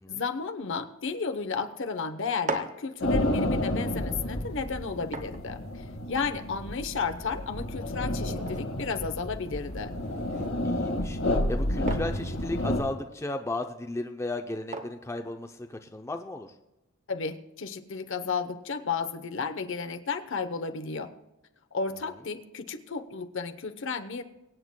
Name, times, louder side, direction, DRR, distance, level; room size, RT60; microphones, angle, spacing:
voice 1, 0.1-5.6 6.1-9.9 17.1-21.1 21.7-24.2, left 5 dB, 60° left, 8 dB, 0.9 m, -33 dB
sound 1, 2.2-16.1, right 3 dB, 35° right, 0.8 m, -44 dB
sound 2, 3.0-12.8, left 1 dB, 85° left, 1.9 m, -30 dB
voice 2, 10.6-16.5 22.1-22.2, left 2 dB, 15° left, 5 dB, 0.5 m, -35 dB
24.0 x 8.9 x 2.2 m, 0.96 s
head